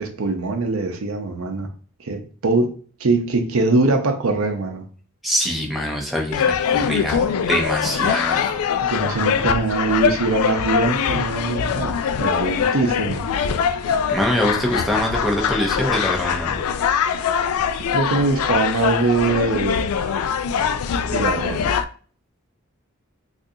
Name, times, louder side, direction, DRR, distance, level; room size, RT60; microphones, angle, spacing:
voice 1, 0.0-1.7 2.0-2.7 3.0-4.8 8.8-13.2 17.8-19.9 21.0-21.7, right 3 dB, 70° right, 0.6 m, -22 dB
voice 2, 5.2-8.7 14.1-16.6, equal, ahead, 0.6 m, -24 dB
sound 1, 6.3-21.8, left 7 dB, 80° left, 0.3 m, -22 dB
3.7 x 2.5 x 2.7 m
head